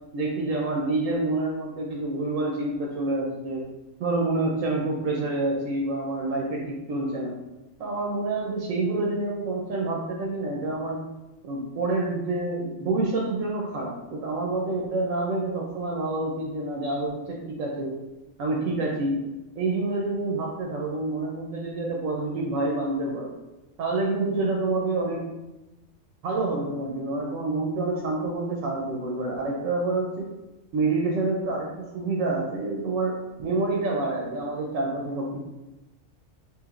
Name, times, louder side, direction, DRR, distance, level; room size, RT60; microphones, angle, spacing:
voice 1, 0.1-3.6 4.0-7.3 7.8-11.0 11.4-17.9 18.4-19.1 19.6-23.4 23.8-25.2 26.2-30.3 30.7-35.4, right 2 dB, 75° right, -1 dB, 0.9 m, -27 dB
3.1 x 2.9 x 2.4 m, 1.0 s
omnidirectional pair, 1.4 m